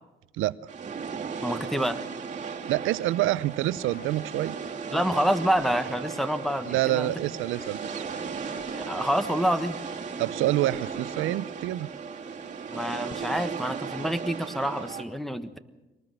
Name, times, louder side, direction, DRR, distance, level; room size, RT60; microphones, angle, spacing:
sound 1, 0.7-15.0, right 5 dB, 40° right, 2.3 m, -36 dB
voice 1, 1.4-2.0 4.9-7.1 8.7-9.8 12.7-15.6, equal, ahead, 11 dB, 1.3 m, -27 dB
voice 2, 2.7-4.6 6.7-8.0 10.2-11.9, right 15 dB, 90° right, 18 dB, 0.6 m, -27 dB
sound 2, 3.6-4.5 5.6-5.9 6.5-6.6 7.2-10.1 10.7-11.0 12.0-12.1 13.0-13.4 14.1-14.2, left 6 dB, 50° left, 1.2 m, -49 dB
23.5 x 19.0 x 6.4 m, 1.1 s
cardioid pair, 90°, 20 cm